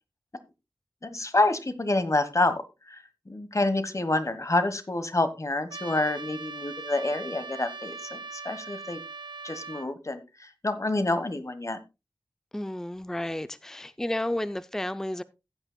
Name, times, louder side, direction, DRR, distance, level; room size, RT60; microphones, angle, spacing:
voice 1, 1.0-9.0 9.4-11.8, left 2 dB, 40° left, 11 dB, 1.2 m, -28 dB
Trumpet, 5.7-9.9, right 4 dB, 70° right, 0.7 m, -40 dB
voice 2, 12.5-15.2, left 1 dB, 5° left, 13 dB, 0.4 m, -32 dB
15.0 x 8.8 x 2.2 m, 0.25 s
wide cardioid pair, 70°, 8 cm